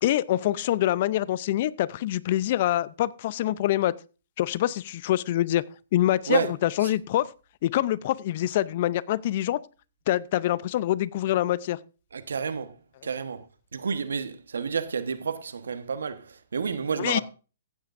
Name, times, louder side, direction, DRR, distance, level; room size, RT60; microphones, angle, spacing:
voice 1, 0.0-3.9 4.4-5.6 5.9-7.3 7.6-9.6 10.1-11.8 17.0-17.2, left 13 dB, 50° left, 0.5 m, -25 dB
voice 2, 12.1-12.7 13.0-13.5 13.7-17.2, right 6 dB, 80° right, 1.2 m, -30 dB
15.5 x 9.0 x 2.6 m
hypercardioid pair, 135°, 0 cm